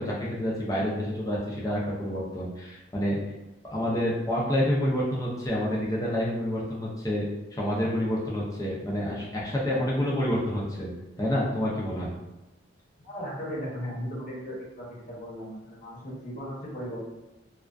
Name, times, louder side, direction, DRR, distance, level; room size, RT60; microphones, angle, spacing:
voice 1, 0.0-3.2 3.7-10.9 11.2-12.1, equal, 15° left, -6 dB, 0.4 m, -28 dB
voice 2, 13.0-17.0, equal, 40° left, -6 dB, 0.8 m, -37 dB
2.3 x 2.2 x 2.3 m, 0.97 s
head